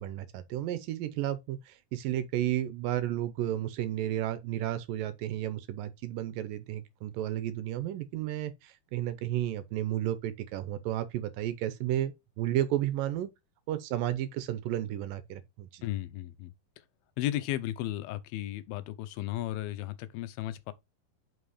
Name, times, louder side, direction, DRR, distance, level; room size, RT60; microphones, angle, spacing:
voice 1, 0.0-13.3 13.7-15.8, right 12 dB, 75° right, 2.2 m, -32 dB
voice 2, 15.8-16.5 17.2-20.7, left 14 dB, 85° left, 2.6 m, -34 dB
5.7 x 5.2 x 4.8 m
omnidirectional pair, 4.2 m